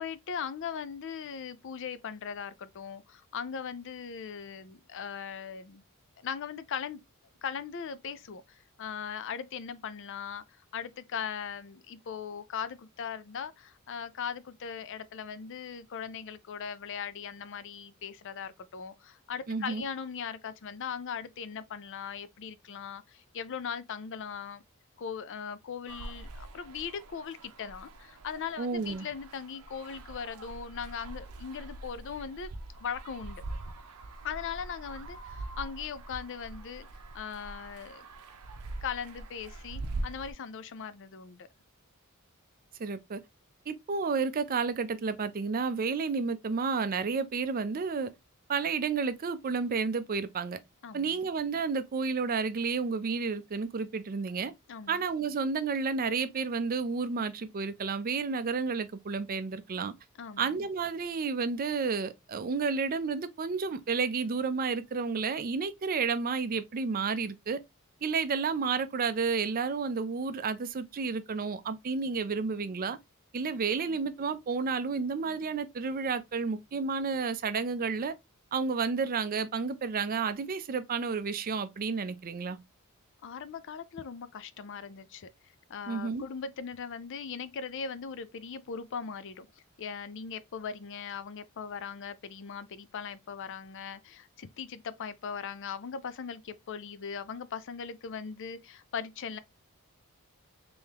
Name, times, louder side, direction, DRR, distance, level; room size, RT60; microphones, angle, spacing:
voice 1, 0.0-5.8 6.2-7.0 7.4-24.6 25.0-33.4 34.2-36.9 37.1-38.1 38.8-41.5 50.8-51.2 54.7-55.0 60.2-60.6 83.2-85.3 85.7-89.5 89.8-99.4, left 7 dB, 55° left, 0.4 m, -39 dB
voice 2, 19.5-19.8 28.6-29.1 42.8-43.2 43.7-48.1 48.5-50.6 50.9-54.5 54.9-59.9 60.4-67.6 68.0-73.0 73.3-78.1 78.5-82.6 85.9-86.2, right 5 dB, 40° right, 0.4 m, -31 dB
sound 1, 25.9-40.3, right 2 dB, 80° right, 0.6 m, -43 dB
3.6 x 3.4 x 2.8 m
head